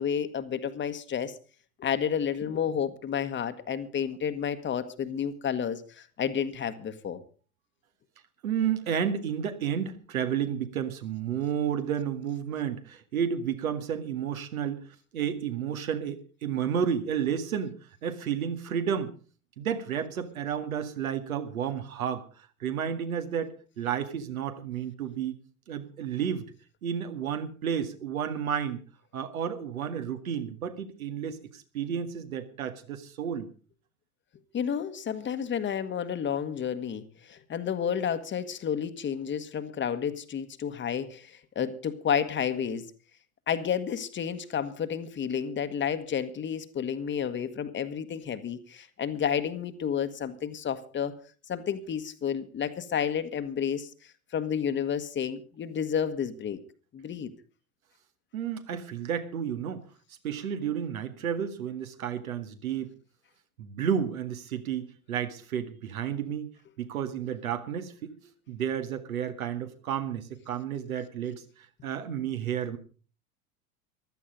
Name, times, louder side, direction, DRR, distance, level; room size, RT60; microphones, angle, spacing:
voice 1, 0.0-1.3 1.8-7.2 34.5-42.8 43.5-51.1 51.5-53.9 54.3-56.6 56.9-57.3, left 8 dB, 25° left, 11 dB, 1.4 m, -31 dB
voice 2, 8.4-14.8 15.1-17.7 18.0-19.1 19.6-22.3 22.6-25.4 25.7-26.5 26.8-28.8 29.1-33.5 58.3-59.8 60.2-62.9 63.6-66.5 66.8-68.1 68.5-72.8, right 8 dB, 70° right, 8 dB, 2.0 m, -31 dB
15.5 x 12.5 x 5.1 m, 0.38 s
figure-of-eight pair, 85°, 44 cm